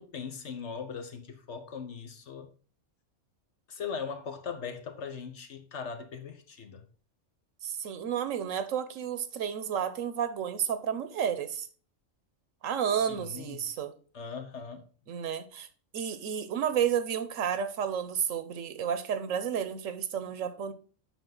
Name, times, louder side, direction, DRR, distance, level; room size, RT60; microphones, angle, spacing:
voice 1, 0.0-2.5 3.7-6.8 13.1-13.6 14.1-15.1, left 6 dB, 65° left, 1.3 m, -40 dB
voice 2, 7.6-11.7 12.6-13.9 15.1-15.7 15.9-20.7, right 8 dB, 80° right, 1.2 m, -31 dB
8.3 x 5.4 x 3.9 m
omnidirectional pair, 1.3 m